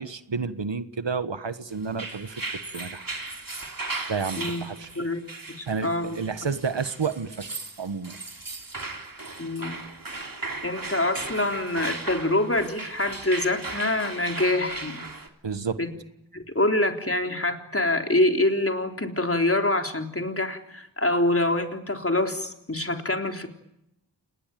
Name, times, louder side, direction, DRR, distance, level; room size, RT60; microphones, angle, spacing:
voice 1, 0.0-2.4 2.7-3.0 4.1-5.0 5.7-7.5 7.8-8.2 15.4-15.8, right 5 dB, 70° right, 12 dB, 1.5 m, -30 dB
sound 1, 1.8-15.3, right 3 dB, 50° right, 3.5 m, -37 dB
voice 2, 5.6-6.2 9.4-9.8 10.6-15.0 15.8-15.9 16.3-23.5, left 1 dB, 30° left, 4 dB, 3.8 m, -25 dB
29.0 x 20.0 x 9.2 m, 0.84 s
wide cardioid pair, 55°, 45 cm